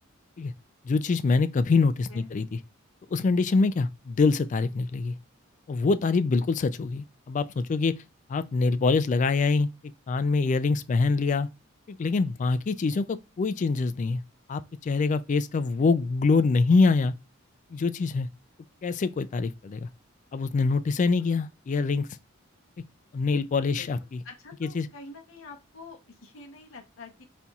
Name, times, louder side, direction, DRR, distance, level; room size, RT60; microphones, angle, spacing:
voice 1, 0.8-2.6 3.1-5.1 5.7-7.9 8.3-9.7 10.1-11.5 11.9-14.2 14.5-17.1 17.7-18.3 18.8-19.9 20.3-22.1 23.1-24.2 24.6-24.9, left 4 dB, 35° left, 0.3 m, -25 dB
voice 2, 24.2-27.3, left 3 dB, 70° left, 0.8 m, -46 dB
4.2 x 4.0 x 2.3 m
head